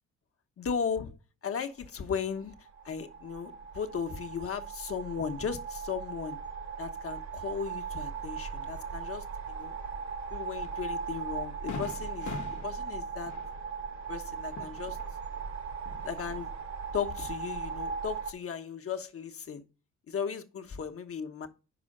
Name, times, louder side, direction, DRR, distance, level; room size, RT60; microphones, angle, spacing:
voice 1, 0.6-1.2 1.4-2.5 2.8-6.4 6.8-9.8 10.3-12.3 12.6-13.3 14.1-15.0 16.0-16.5 16.9-19.6 20.1-21.5, left 6 dB, 50° left, 1.2 m, -36 dB
sound 1, 2.4-18.3, right 5 dB, 65° right, 1.8 m, -38 dB
Fireworks, 10.6-10.8 11.2-11.3 11.7-15.5 15.8-16.6, left 5 dB, 70° left, 1.2 m, -43 dB
6.0 x 5.0 x 6.5 m
cardioid pair, 90°, 30 cm